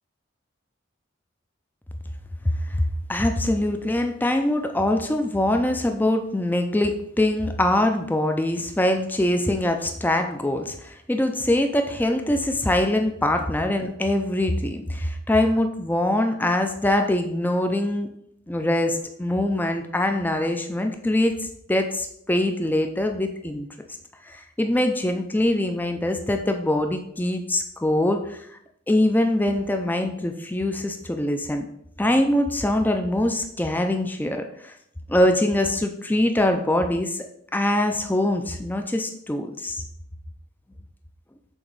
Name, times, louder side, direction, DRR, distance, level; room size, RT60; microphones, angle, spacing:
voice 1, 2.8-18.1 18.5-21.4 21.7-23.7 24.2-28.5 28.9-31.7 32.0-34.7 35.1-37.2 37.5-39.8, left 1 dB, 10° left, 5 dB, 0.4 m, -23 dB
7.1 x 3.0 x 5.3 m, 0.71 s
head